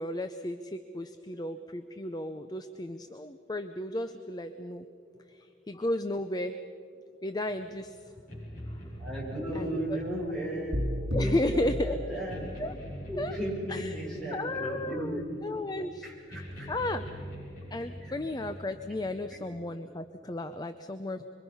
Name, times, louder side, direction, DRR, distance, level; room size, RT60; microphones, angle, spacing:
voice 1, 0.0-4.9 5.3-6.6 7.2-8.0 8.7-8.8 9.5-10.0 11.1-12.0 12.6-12.8 13.2-13.4 13.7-14.0 14.3-17.1 17.7-21.2, left 1 dB, 20° left, 9 dB, 0.6 m, -34 dB
sound 1, 7.5-19.3, equal, 50° left, 7.5 m, -44 dB
voice 2, 9.0-10.8 11.1-12.5 13.1-15.2 16.0-16.7 19.3-19.4, right 1 dB, 5° left, -6 dB, 7.4 m, -35 dB
sound 2, 10.7-12.8, left 1 dB, 65° right, 3.8 m, -33 dB
25.5 x 24.0 x 5.7 m, 2.4 s
head